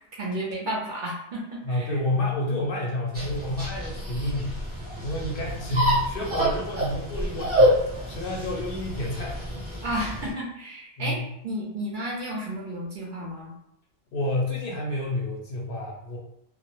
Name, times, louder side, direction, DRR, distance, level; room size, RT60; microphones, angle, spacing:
voice 1, 0.1-1.9 9.8-11.2 11.4-13.5, right 1 dB, 60° right, -3 dB, 0.6 m, -32 dB
voice 2, 1.6-4.6 5.0-9.4 11.0-11.3 14.1-16.2, left 1 dB, 65° left, -1 dB, 0.7 m, -29 dB
sound 1, 3.1-10.3, equal, 10° right, 0.9 m, -27 dB
2.1 x 2.0 x 2.9 m, 0.79 s
omnidirectional pair, 1.2 m